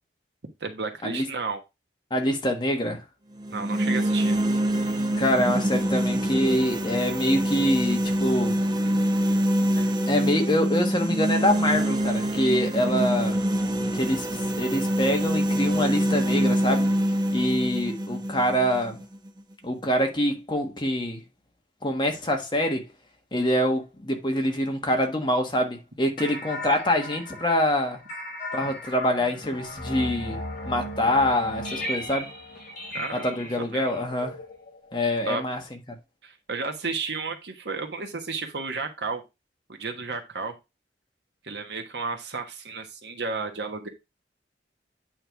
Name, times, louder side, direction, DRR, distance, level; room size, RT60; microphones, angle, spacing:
voice 1, 0.6-1.6 3.5-4.4 32.9-33.3 33.6-34.0 35.3-35.4 36.2-39.2 39.7-40.5 41.4-43.9, right 4 dB, 75° right, 1.3 m, -32 dB
voice 2, 2.1-3.0 5.2-8.6 9.8-13.4 13.9-16.9 17.3-19.0 19.6-21.2 21.8-22.9 23.3-28.0 28.5-32.3 33.1-34.3 34.9-35.6, equal, 25° left, 1.3 m, -25 dB
sound 1, 3.4-19.4, right 1 dB, 25° right, 0.8 m, -25 dB
sound 2, 26.2-35.1, left 1 dB, 45° left, 4.7 m, -36 dB
8.8 x 3.4 x 4.5 m
head